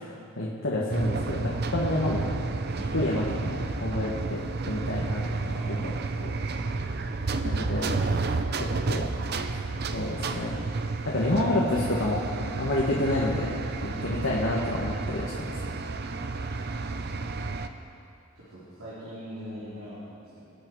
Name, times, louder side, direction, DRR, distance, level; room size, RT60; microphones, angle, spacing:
voice 1, 0.0-2.4 2.9-5.9 6.2-6.3 7.4-8.0 8.6-9.1 9.9-10.6 11.0-12.2 12.6-13.5 14.0-15.6, left 1 dB, 60° left, -5 dB, 1.7 m, -29 dB
sound 1, 0.9-17.7, right 3 dB, 45° right, 0.6 m, -31 dB
voice 2, 5.5-6.1 12.6-12.9 13.8-14.3 16.1-16.4 18.3-20.5, equal, 80° right, -10 dB, 4.2 m, -42 dB
25.5 x 8.9 x 4.8 m, 2.5 s
head